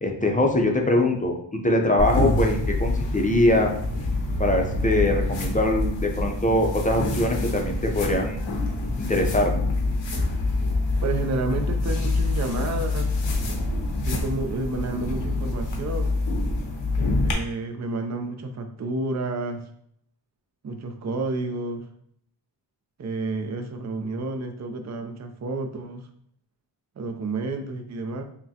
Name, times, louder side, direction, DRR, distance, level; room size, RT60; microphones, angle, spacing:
voice 1, 0.0-3.7 4.4-8.4 9.0-9.5, left 1 dB, 20° left, 1 dB, 0.5 m, -22 dB
sound 1, 2.0-17.3, left 2 dB, 85° left, 0.8 m, -26 dB
voice 2, 11.0-13.2 14.0-16.1 17.2-19.6 20.6-21.9 23.0-26.1 27.0-28.2, right 3 dB, 40° right, 6 dB, 0.5 m, -30 dB
5.7 x 2.1 x 2.8 m, 0.66 s
wide cardioid pair, 100°, 44 cm